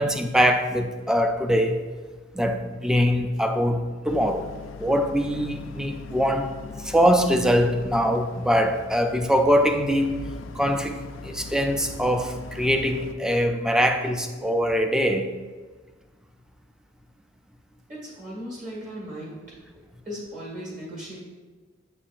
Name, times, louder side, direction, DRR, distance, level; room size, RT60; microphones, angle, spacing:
voice 1, 0.0-1.8 2.3-4.5 4.8-6.5 6.8-10.2 10.5-15.3, equal, 5° right, 6 dB, 0.4 m, -23 dB
Boat Water vehicle, 4.1-13.1, left 4 dB, 85° left, 0.4 m, -41 dB
voice 2, 17.9-19.3 20.0-21.2, equal, 40° right, -5 dB, 1.7 m, -37 dB
7.1 x 6.7 x 2.5 m, 1.4 s
head